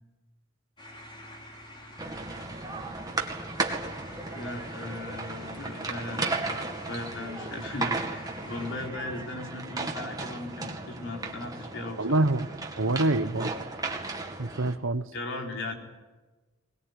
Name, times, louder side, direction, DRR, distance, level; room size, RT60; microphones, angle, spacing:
sound 1, 0.8-8.9, left 1 dB, 25° left, 4.0 m, -47 dB
sound 2, 2.0-14.7, right 3 dB, 20° right, 2.2 m, -35 dB
voice 1, 4.3-12.2 15.1-15.7, left 2 dB, 65° left, 2 dB, 4.1 m, -37 dB
voice 2, 12.0-12.5 12.8-13.5 14.4-15.1, right 2 dB, 65° right, 14 dB, 1.0 m, -25 dB
21.5 x 21.0 x 9.7 m, 1.2 s
head